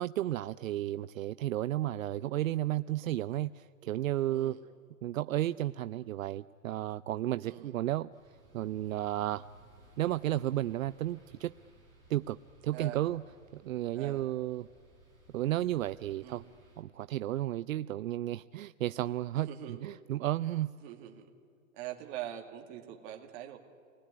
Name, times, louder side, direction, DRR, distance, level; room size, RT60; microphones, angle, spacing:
voice 1, 0.0-4.6 5.0-8.1 8.5-9.5 10.0-11.5 12.1-13.2 13.5-14.7 15.3-16.4 16.8-20.7, right 14 dB, 70° right, 13 dB, 0.6 m, -33 dB
sound 1, 8.1-16.8, equal, 10° left, 5.1 m, -61 dB
voice 2, 12.7-13.1 13.9-14.3 16.2-16.4 19.4-19.8 20.8-21.3 21.7-23.6, right 12 dB, 30° right, 3 dB, 2.2 m, -43 dB
29.0 x 20.0 x 9.7 m, 2.4 s
hypercardioid pair, 160°, 42 cm